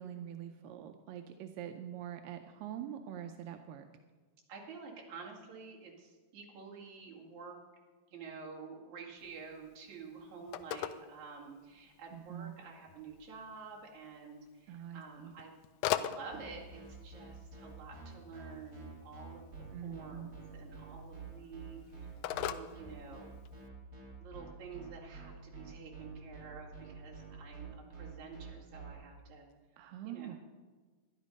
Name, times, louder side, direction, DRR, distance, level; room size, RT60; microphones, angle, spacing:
voice 1, 0.0-3.9 12.1-12.5 14.7-15.3 19.7-20.3 29.8-30.4, right 10 dB, 85° right, 6 dB, 2.3 m, -44 dB
voice 2, 1.7-2.4 4.5-7.6 8.1-15.5 15.8-19.5 19.8-23.4 24.2-29.5 30.0-30.4, right 5 dB, 60° right, -3 dB, 3.5 m, -49 dB
Telephone, 9.2-23.7, left 12 dB, 85° left, 2.2 m, -44 dB
sound 1, 16.3-28.9, right 4 dB, 25° right, 2.7 m, -49 dB
13.5 x 11.0 x 5.3 m, 1.4 s
omnidirectional pair, 3.9 m